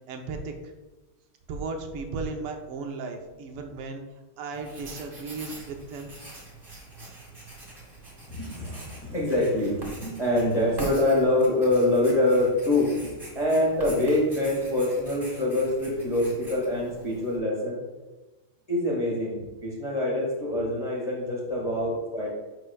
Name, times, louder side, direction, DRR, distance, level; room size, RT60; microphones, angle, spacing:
voice 1, 0.1-0.5 1.5-4.0 4.4-6.1, right 4 dB, 85° right, 4 dB, 1.8 m, -35 dB
Writing, 4.5-17.4, right 2 dB, 10° right, 1.6 m, -44 dB
voice 2, 8.3-17.8 18.7-22.3, left 1 dB, 20° left, -4 dB, 1.3 m, -25 dB
11.0 x 5.4 x 2.3 m, 1.2 s
omnidirectional pair, 2.4 m